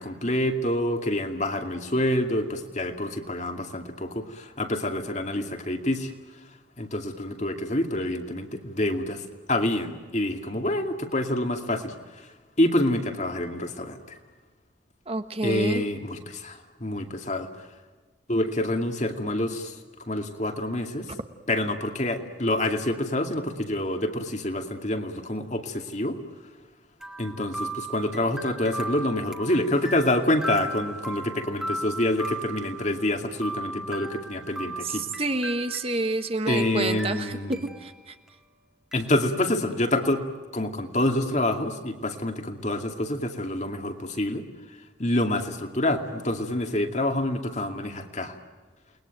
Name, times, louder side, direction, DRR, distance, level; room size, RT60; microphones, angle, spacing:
voice 1, 0.0-6.1 6.8-12.3 12.6-14.2 15.4-17.5 18.3-19.8 20.1-21.1 21.5-26.2 27.2-35.0 36.5-37.6 38.9-40.2 40.5-44.4 45.0-48.3, left 1 dB, 40° left, 5 dB, 2.4 m, -27 dB
voice 2, 15.1-15.8 34.8-37.4 37.8-38.1, right 2 dB, 30° right, 8 dB, 1.3 m, -29 dB
sound 1, 27.0-36.2 36.5-37.9 38.3-38.4 38.9-39.0, right 2 dB, 5° right, 2.1 m, -37 dB
29.5 x 21.0 x 9.1 m, 1.4 s
head